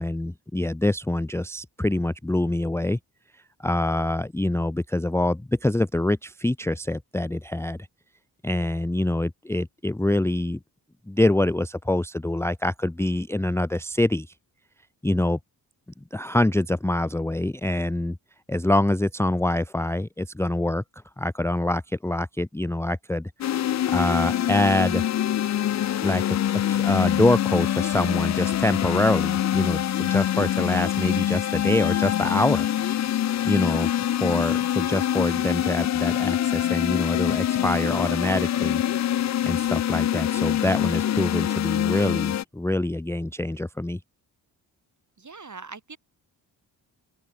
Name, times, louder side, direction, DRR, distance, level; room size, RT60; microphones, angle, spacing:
voice 1, 0.0-3.0 3.6-7.8 8.4-10.6 11.1-14.3 15.0-15.4 16.1-18.2 18.5-20.8 21.2-23.3 23.9-25.0 26.0-26.4 26.7-32.7 33.4-38.8 39.4-44.0, left 1 dB, 5° left, 0.7 m, -25 dB
sound 1, 23.4-42.4, left 11 dB, 40° left, 0.4 m, -25 dB
voice 2, 45.2-46.0, right 4 dB, 35° right, 4.4 m, -41 dB
open air
supercardioid pair, 50°, 48 cm